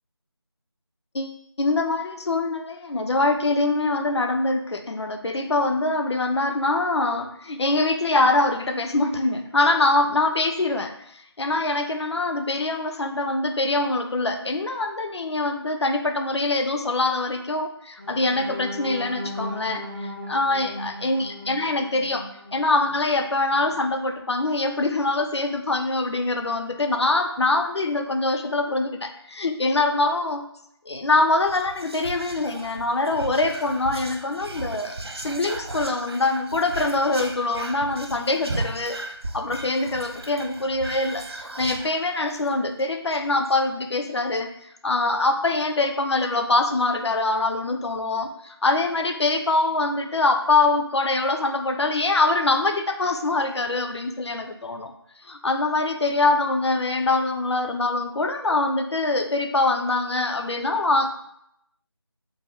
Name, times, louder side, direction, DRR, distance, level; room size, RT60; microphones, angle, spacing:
voice 1, 1.1-22.2 22.5-30.4 30.9-39.0 39.3-54.9 55.2-61.1, left 2 dB, 75° left, 6 dB, 0.5 m, -24 dB
sound 1, 18.0-23.9 24.4-24.6 24.9-25.1, left 1 dB, 20° right, 0.6 m, -38 dB
Whispering, 31.4-42.5 42.8-42.9 43.1-43.5, right 2 dB, 65° right, 0.4 m, -36 dB
3.3 x 2.2 x 3.4 m, 0.76 s
figure-of-eight pair, 170°, 14 cm